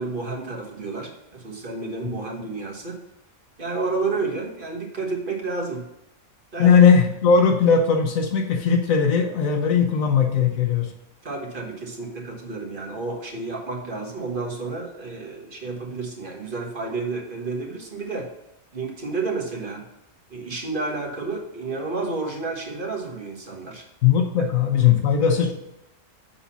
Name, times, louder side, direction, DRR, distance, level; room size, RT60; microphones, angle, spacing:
voice 1, 0.0-3.0 3.6-5.8 6.5-6.8 11.2-18.3 18.7-19.8 20.3-23.8, right 3 dB, 40° right, 0 dB, 1.5 m, -30 dB
voice 2, 6.6-10.9 24.0-25.5, left 6 dB, 80° left, 4 dB, 1.3 m, -18 dB
7.1 x 4.0 x 5.8 m, 0.91 s
omnidirectional pair, 1.4 m